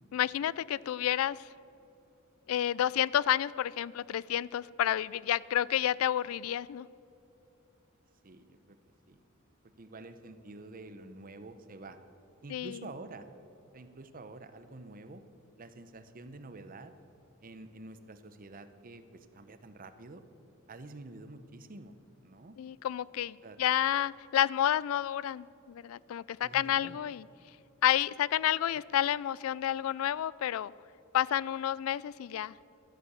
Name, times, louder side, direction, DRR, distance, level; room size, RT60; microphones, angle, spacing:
voice 1, 0.1-1.5 2.5-6.9 12.5-12.9 22.6-27.3 27.8-30.7 31.1-32.5, left 11 dB, 85° left, 22 dB, 0.3 m, -30 dB
voice 2, 8.2-8.8 9.1-9.2 9.8-12.0 12.4-13.3 13.7-15.2 15.6-16.9 17.4-20.2 20.7-22.0 22.2-22.6 23.4-23.6 26.4-27.0, right 2 dB, 40° right, 11 dB, 0.7 m, -48 dB
11.5 x 11.5 x 6.8 m, 2.8 s
head